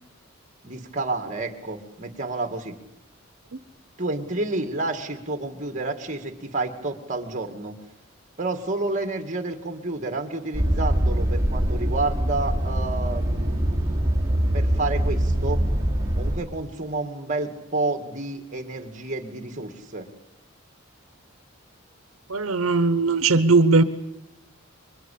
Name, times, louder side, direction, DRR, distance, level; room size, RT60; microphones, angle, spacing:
voice 1, 0.6-2.7 4.0-7.8 8.4-13.7 14.5-15.6 16.2-20.1, right 2 dB, 35° right, 5 dB, 2.3 m, -30 dB
sound 1, 10.5-16.4, right 1 dB, 15° right, 4.7 m, -23 dB
voice 2, 22.3-23.8, right 3 dB, 90° right, 11 dB, 1.0 m, -19 dB
26.5 x 23.0 x 8.6 m, 0.96 s
head